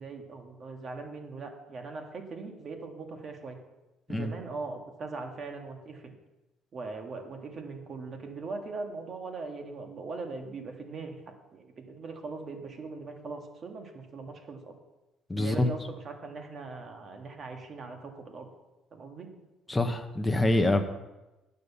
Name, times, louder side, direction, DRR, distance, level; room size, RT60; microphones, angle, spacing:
voice 1, 0.0-3.6 4.1-6.1 6.7-11.2 11.5-14.7 15.4-18.5 18.9-19.3, right 4 dB, 40° right, 3 dB, 1.7 m, -40 dB
voice 2, 15.3-15.7 19.7-20.8, left 1 dB, 10° left, 5 dB, 0.9 m, -25 dB
9.4 x 6.9 x 6.9 m, 1.0 s
cardioid pair, 130°, 0 cm